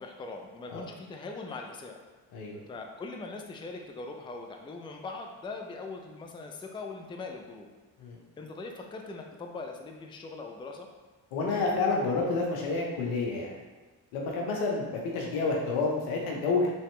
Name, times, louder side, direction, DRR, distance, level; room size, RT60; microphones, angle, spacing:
voice 1, 0.0-2.0 2.7-7.7 8.4-10.9, left 3 dB, 10° left, 3 dB, 0.4 m, -41 dB
voice 2, 11.3-13.5 14.1-16.7, left 3 dB, 80° left, -1 dB, 0.8 m, -29 dB
3.1 x 2.8 x 3.2 m, 1.3 s
hypercardioid pair, 45°, 49 cm